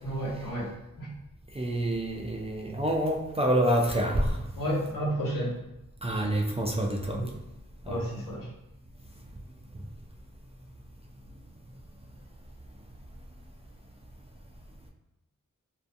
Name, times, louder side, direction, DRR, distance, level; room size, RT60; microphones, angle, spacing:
voice 1, 0.0-1.1 4.5-5.6 7.1-7.3 7.9-8.5, right 1 dB, 70° left, -6 dB, 1.1 m, -32 dB
voice 2, 1.6-4.4 6.0-7.2 7.9-8.0, right 1 dB, 20° right, -1 dB, 0.3 m, -27 dB
2.5 x 2.2 x 2.5 m, 0.95 s
cardioid pair, 55°, 35 cm